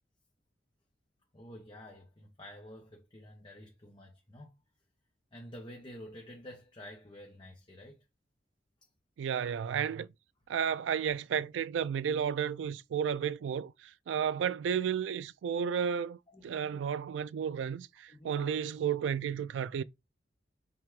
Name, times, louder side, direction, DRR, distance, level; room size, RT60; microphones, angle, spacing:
voice 1, 1.3-4.6 5.3-8.0 16.3-16.9 18.1-18.5, equal, 25° left, 0.8 m, -50 dB
voice 2, 9.2-10.1 10.5-16.2 16.4-19.8, right 8 dB, 85° right, 0.3 m, -32 dB
5.7 x 2.4 x 3.5 m
head